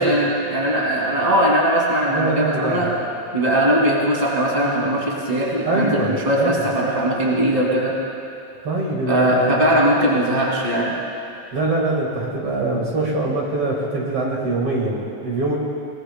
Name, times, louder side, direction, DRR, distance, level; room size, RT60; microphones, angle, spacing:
voice 1, 0.0-2.9 3.3-7.9 9.1-10.9, right 1 dB, 15° right, -3 dB, 2.2 m, -20 dB
voice 2, 2.1-2.9 5.6-6.6 8.6-9.7 11.5-15.6, right 2 dB, 50° right, -3 dB, 2.5 m, -23 dB
22.5 x 20.0 x 2.2 m, 2.7 s
omnidirectional pair, 3.3 m